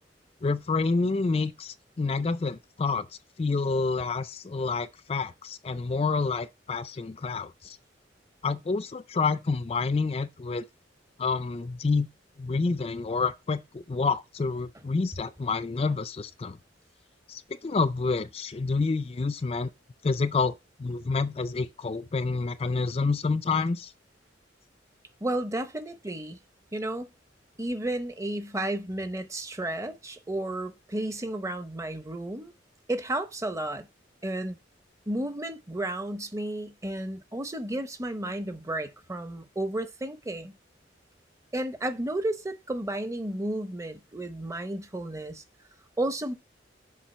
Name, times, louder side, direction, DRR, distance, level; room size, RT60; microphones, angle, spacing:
voice 1, 0.4-3.1 3.4-7.8 8.4-10.6 11.2-12.1 12.4-16.6 17.3-19.7 20.0-20.5 20.8-23.9, left 4 dB, 30° left, 0.4 m, -28 dB
voice 2, 25.2-26.4 26.7-27.1 27.6-32.5 32.9-33.9 34.2-34.6 35.1-40.5 41.5-45.4 46.0-46.3, right 1 dB, 15° right, 0.8 m, -32 dB
7.3 x 4.8 x 6.6 m
head